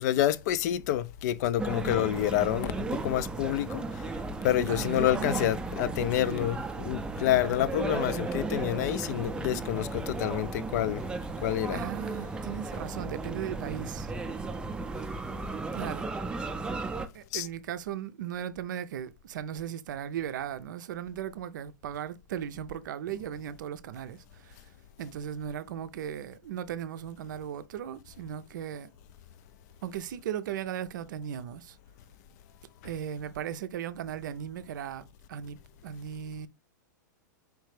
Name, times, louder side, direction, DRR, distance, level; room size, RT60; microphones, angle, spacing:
voice 1, 0.0-3.8 4.4-11.0 11.4-11.8 17.3-17.5, left 12 dB, 55° left, 0.4 m, -28 dB
sound 1, 1.6-17.1, right 3 dB, 10° right, 0.4 m, -35 dB
voice 2, 4.7-5.5 11.7-14.1 15.7-16.1 17.1-24.7 25.0-28.9 29.8-31.8 32.8-35.6 35.8-36.5, right 9 dB, 70° right, 0.5 m, -37 dB
4.6 x 3.2 x 3.2 m
hypercardioid pair, 115°, 11 cm